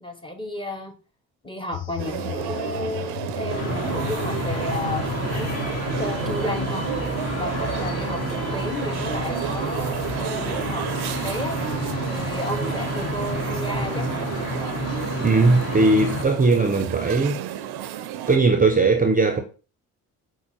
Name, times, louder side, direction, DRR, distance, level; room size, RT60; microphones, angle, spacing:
voice 1, 0.0-0.9 1.4-5.1 5.3-5.7 6.0-6.9 7.3-11.6 12.0-14.1, left 1 dB, 10° left, 0.8 m, -32 dB
sound 1, 1.7-6.8, left 10 dB, 60° left, 0.6 m, -35 dB
sound 2, 2.0-18.4, right 10 dB, 60° right, 0.5 m, -32 dB
sound 3, 3.5-16.2, equal, 35° left, 1.0 m, -29 dB
voice 2, 15.2-17.5 18.3-19.4, right 3 dB, 20° right, 0.6 m, -19 dB
5.1 x 2.1 x 3.1 m
hypercardioid pair, 50°, 44 cm